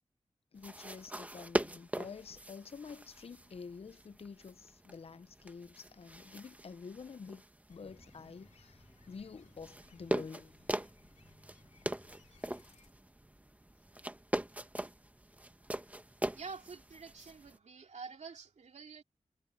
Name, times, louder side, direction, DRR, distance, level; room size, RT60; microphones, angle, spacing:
voice 1, 0.5-7.4 7.7-10.6, left 5 dB, 60° left, 0.6 m, -48 dB
sound 1, 0.6-17.6, right 1 dB, 10° right, 1.3 m, -42 dB
sound 2, 7.7-12.9, left 5 dB, 90° left, 2.3 m, -66 dB
voice 2, 16.3-19.0, right 5 dB, 80° right, 2.7 m, -48 dB
cardioid pair, 60°, 12 cm